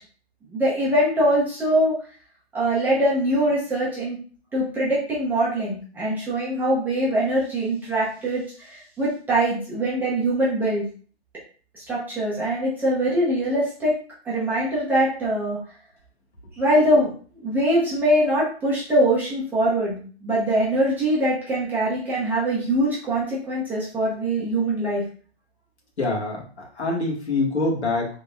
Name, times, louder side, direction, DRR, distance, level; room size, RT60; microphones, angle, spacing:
voice 1, 0.5-2.0 2.5-4.2 4.5-10.9 11.7-14.0 14.2-15.6 16.6-25.0, right 1 dB, 5° right, -7 dB, 0.7 m, -23 dB
voice 2, 26.0-28.1, left 2 dB, 85° left, -2 dB, 1.7 m, -25 dB
3.9 x 3.2 x 2.3 m, 0.42 s
hypercardioid pair, 145°, 33 cm